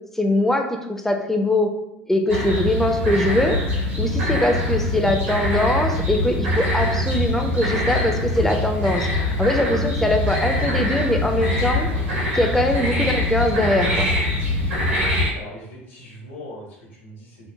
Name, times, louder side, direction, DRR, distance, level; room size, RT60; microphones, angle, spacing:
voice 1, 0.2-1.7 2.1-9.1 9.4-11.9 12.3-14.1, left 1 dB, 5° left, 4 dB, 0.4 m, -22 dB
sound 1, 2.3-15.3, left 1 dB, 80° right, 1.2 m, -23 dB
voice 2, 14.6-15.0 15.3-17.5, left 1 dB, 65° left, -3 dB, 1.0 m, -40 dB
2.9 x 2.0 x 2.7 m, 0.84 s
figure-of-eight pair, 70°, 7 cm